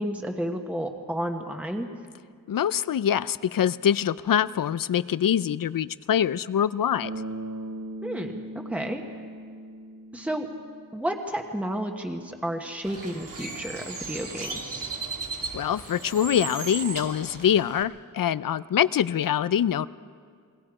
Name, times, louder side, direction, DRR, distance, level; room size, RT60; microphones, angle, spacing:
voice 1, 0.0-1.9 8.0-9.0 10.1-10.5 10.9-14.9, right 1 dB, 5° right, 3 dB, 1.3 m, -31 dB
voice 2, 2.5-7.1 15.5-19.9, left 9 dB, 75° left, 17 dB, 0.5 m, -24 dB
Bass guitar, 7.0-11.0, right 1 dB, 90° right, 7.0 m, -38 dB
Bird, 12.8-17.8, right 3 dB, 70° right, 2.6 m, -36 dB
28.5 x 20.5 x 4.9 m, 2.1 s
wide cardioid pair, 110°, 34 cm